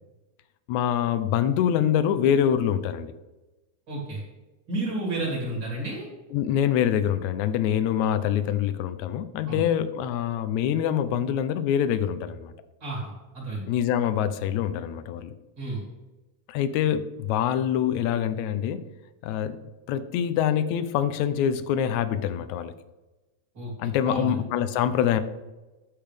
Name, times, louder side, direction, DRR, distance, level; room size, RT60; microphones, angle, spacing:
voice 1, 0.7-3.1 6.3-12.5 13.7-15.4 16.5-18.9 19.2-22.7 23.8-25.2, left 9 dB, 80° left, 12 dB, 1.8 m, -25 dB
voice 2, 3.9-4.2 4.7-6.1 9.5-9.6 12.8-13.6 15.6-15.8 23.5-23.7 24.0-24.4, right 2 dB, 35° right, -5 dB, 3.3 m, -31 dB
10.5 x 7.2 x 3.4 m, 1.1 s
omnidirectional pair, 3.5 m